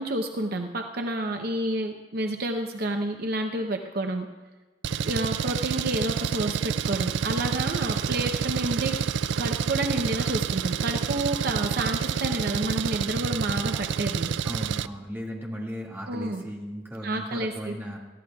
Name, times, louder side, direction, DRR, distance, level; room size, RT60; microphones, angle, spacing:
voice 1, 0.0-4.3 5.0-9.0 9.4-14.3 16.1-16.4 17.0-17.7, right 1 dB, 55° right, 4 dB, 0.7 m, -29 dB
Engine, 4.8-14.9, right 7 dB, 70° right, 0.3 m, -28 dB
voice 2, 14.4-18.0, equal, 10° right, -3 dB, 2.0 m, -36 dB
21.0 x 14.0 x 2.4 m, 1.2 s
head